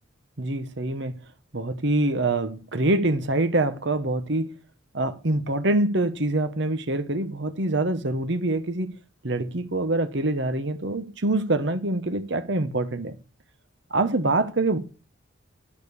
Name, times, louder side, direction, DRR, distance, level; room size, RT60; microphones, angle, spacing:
voice 1, 0.4-1.2 1.5-4.5 4.9-8.9 9.2-13.2 13.9-14.8, right 2 dB, 60° right, 1.1 m, -25 dB
11.5 x 5.3 x 6.7 m
head